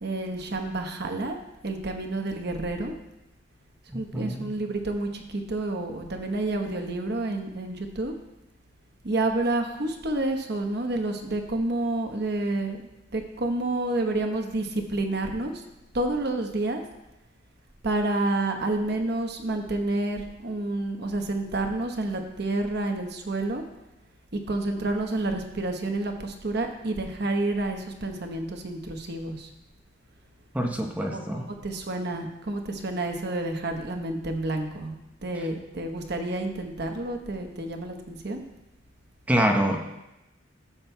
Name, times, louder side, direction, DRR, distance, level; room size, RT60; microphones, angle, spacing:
voice 1, 0.0-1.4 1.6-2.9 3.9-8.1 9.0-15.6 15.9-16.8 17.8-23.6 24.5-29.5 31.0-35.0 35.2-38.4, right 2 dB, 60° right, 4 dB, 1.0 m, -29 dB
voice 2, 3.9-4.5 30.5-31.4 39.3-39.8, equal, 10° right, 2 dB, 0.8 m, -25 dB
14.5 x 7.5 x 2.2 m, 0.94 s
head